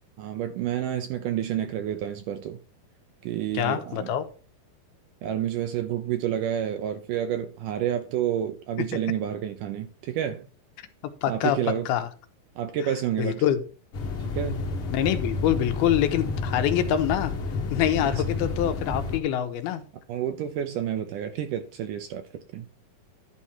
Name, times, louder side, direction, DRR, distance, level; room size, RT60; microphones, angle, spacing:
voice 1, 0.2-2.6 3.2-4.1 5.2-10.5 11.3-11.9 12.6-13.4 14.3-14.7 18.0-18.1 20.1-22.7, right 10 dB, 75° right, 2.0 m, -29 dB
voice 2, 3.6-4.3 11.2-11.6 11.9-12.1 13.2-13.6 14.9-17.3 17.7-19.8, left 10 dB, 80° left, 2.9 m, -25 dB
sound 1, 13.9-19.2, left 3 dB, 55° left, 1.6 m, -30 dB
11.5 x 4.3 x 6.2 m
omnidirectional pair, 4.4 m